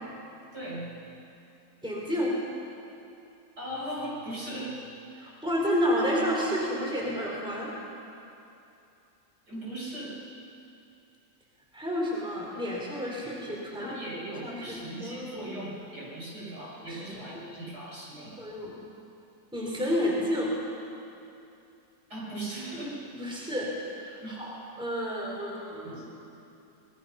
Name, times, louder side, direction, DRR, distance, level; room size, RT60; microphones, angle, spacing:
voice 1, 0.5-0.9 3.6-4.8 9.5-10.2 13.8-18.5 22.1-23.0 24.2-24.4 25.8-26.1, right 1 dB, 55° right, -6 dB, 7.1 m, -38 dB
voice 2, 1.8-2.3 5.2-7.7 11.7-13.9 14.4-15.5 16.8-17.0 17.3-17.4 18.4-18.7 19.5-20.5 23.1-26.0, equal, ahead, -3 dB, 3.9 m, -30 dB
26.0 x 20.5 x 5.8 m, 2.7 s
omnidirectional pair, 2.1 m